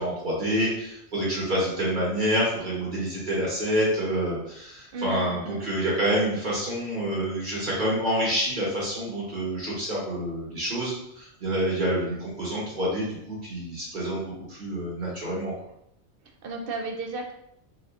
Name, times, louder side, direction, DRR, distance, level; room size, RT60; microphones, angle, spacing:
voice 1, 0.0-14.2 14.5-15.5, equal, 45° right, -6 dB, 1.2 m, -27 dB
voice 2, 4.9-5.8 16.4-17.3, right 2 dB, 60° right, 2 dB, 0.6 m, -34 dB
4.0 x 2.7 x 2.4 m, 0.75 s
omnidirectional pair, 1.2 m